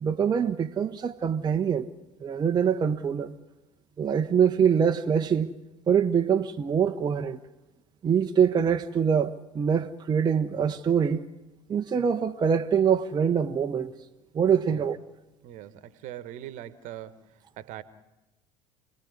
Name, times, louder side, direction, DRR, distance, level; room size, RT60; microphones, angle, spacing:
voice 1, 0.0-1.9 2.2-3.3 4.0-5.5 5.9-7.4 8.0-11.3 11.7-13.9 14.3-15.0, right 7 dB, 25° right, 1.0 m, -24 dB
voice 2, 15.4-17.2 17.6-17.8, right 12 dB, 50° right, 1.5 m, -41 dB
28.0 x 19.0 x 9.6 m
figure-of-eight pair, 65°, 16 cm